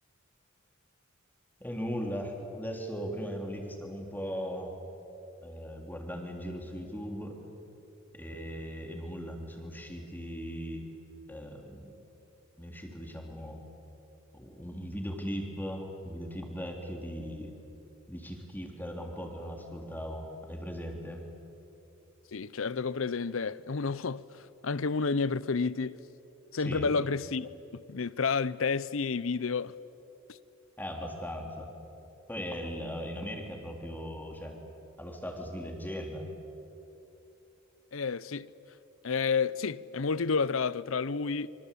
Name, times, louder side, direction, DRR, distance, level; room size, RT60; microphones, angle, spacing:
voice 1, 1.6-4.7 5.4-7.4 8.1-10.9 11.3-11.9 12.6-13.6 14.3-17.5 18.1-21.3 26.6-26.9 30.8-31.7 32.3-34.6 35.0-36.3, equal, 10° left, 3.4 m, -38 dB
voice 2, 22.3-24.2 24.6-26.0 26.5-29.7 37.9-38.5 39.0-41.5, left 4 dB, 75° left, 0.7 m, -30 dB
26.5 x 25.0 x 8.5 m
head